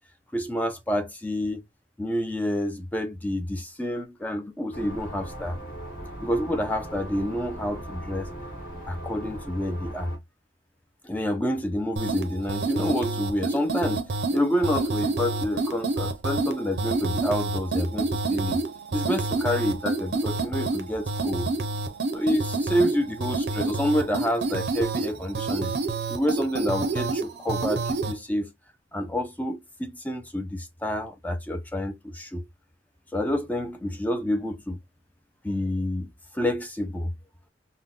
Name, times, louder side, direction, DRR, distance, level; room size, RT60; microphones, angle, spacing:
voice 1, 0.3-1.6 2.0-5.6 6.2-8.3 8.9-10.1 11.0-14.1 14.3-18.6 18.9-21.5 22.1-25.7 26.1-28.5 28.9-32.5 33.1-34.8 35.4-36.1 36.3-37.1, equal, 10° left, 0.4 m, -28 dB
sound 1, 4.7-10.2, right 1 dB, 50° left, 1.8 m, -39 dB
sound 2, 12.0-28.2, right 3 dB, 65° right, 0.6 m, -28 dB
3.7 x 2.1 x 2.3 m
head